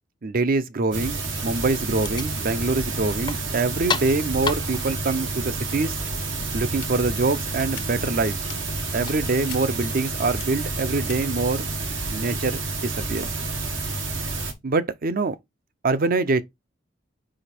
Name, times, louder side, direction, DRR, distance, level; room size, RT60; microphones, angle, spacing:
voice 1, 0.2-6.0 6.5-8.4 8.9-11.7 12.1-13.2 14.6-15.4 15.8-16.4, right 3 dB, 50° right, 0.6 m, -24 dB
sound 1, 0.9-14.5, right 3 dB, 85° right, 1.6 m, -29 dB
sound 2, 2.0-10.1, left 5 dB, 25° left, 0.5 m, -37 dB
sound 3, 6.6-6.9 7.5-7.8 8.4-8.6 9.5-9.6 10.2-10.4 11.1-11.2, left 11 dB, 80° left, 1.1 m, -41 dB
5.0 x 4.9 x 4.4 m
head